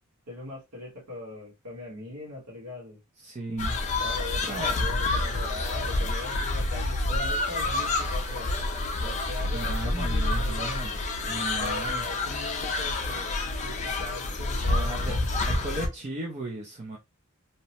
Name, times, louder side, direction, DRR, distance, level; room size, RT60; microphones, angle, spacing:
voice 1, 0.3-3.0 4.0-8.5 9.0-10.8 11.4-13.2 13.6-15.1, left 2 dB, 85° right, 1.3 m, -40 dB
voice 2, 3.2-3.8 4.5-4.8 9.5-10.9 11.3-12.0 14.6-15.2 15.5-17.0, right 2 dB, 30° right, 0.4 m, -35 dB
sound 1, 3.6-15.9, left 2 dB, 30° left, 0.5 m, -28 dB
2.8 x 2.0 x 2.8 m
head